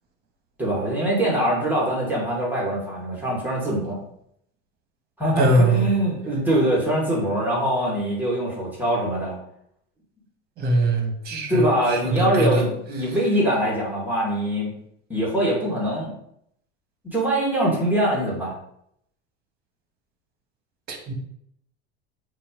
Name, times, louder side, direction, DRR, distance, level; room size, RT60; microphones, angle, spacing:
voice 1, 0.6-4.0 5.2-9.4 11.3-14.7 15.1-16.1 17.1-18.6, right 1 dB, 5° right, -5 dB, 2.2 m, -23 dB
voice 2, 5.4-5.9 10.6-12.6 20.9-21.1, right 2 dB, 35° right, 2 dB, 1.7 m, -22 dB
8.3 x 2.9 x 5.2 m, 0.72 s
cardioid pair, 150°, 29 cm